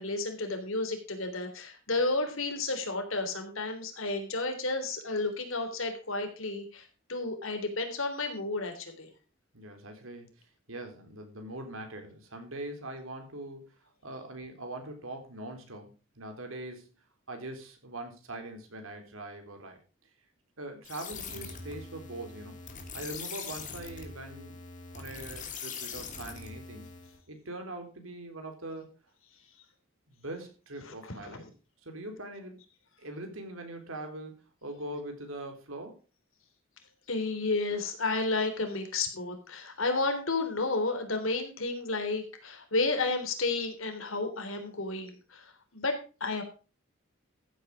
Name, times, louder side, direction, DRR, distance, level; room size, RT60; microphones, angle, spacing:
voice 1, 0.0-9.1 30.8-31.5 37.1-46.0 46.2-46.4, left 3 dB, 70° left, 5 dB, 3.5 m, -32 dB
voice 2, 9.5-10.3 10.7-13.6 14.0-16.9 17.3-19.8 20.6-22.6 22.9-24.6 24.9-26.9 27.3-28.9 30.1-31.4 31.8-32.6 33.0-34.3 34.6-36.0, right 1 dB, 75° right, 5 dB, 3.9 m, -42 dB
sound 1, 20.8-27.2, left 5 dB, 40° left, 2.9 m, -42 dB
14.5 x 8.6 x 4.9 m, 0.34 s
head